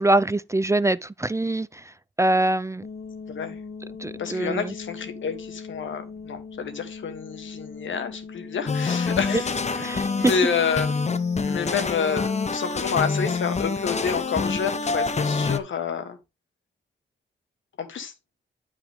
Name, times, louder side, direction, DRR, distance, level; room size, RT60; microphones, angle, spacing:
voice 1, 0.0-2.8 4.0-4.7 9.3-9.4 9.8-10.3, right 2 dB, 15° right, 0.4 m, -24 dB
sound 1, 2.8-15.2, left 5 dB, 55° left, 2.5 m, -40 dB
voice 2, 4.2-11.0 11.5-16.2 17.8-18.1, left 6 dB, 90° left, 1.5 m, -29 dB
sound 2, 8.7-15.6, left 4 dB, 35° left, 0.8 m, -26 dB
10.5 x 4.9 x 3.5 m
cardioid pair, 90°, 19 cm